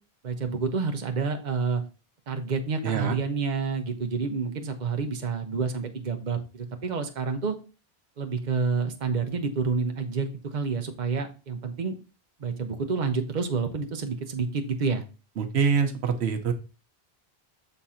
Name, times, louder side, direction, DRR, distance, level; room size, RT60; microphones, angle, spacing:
voice 1, 0.2-1.8 2.3-7.6 8.2-11.9 12.4-15.0, right 5 dB, 45° right, 6 dB, 0.9 m, -29 dB
voice 2, 2.8-3.2 15.4-16.5, right 6 dB, 85° right, 7 dB, 1.0 m, -25 dB
6.8 x 3.7 x 4.2 m, 0.32 s
omnidirectional pair, 1.1 m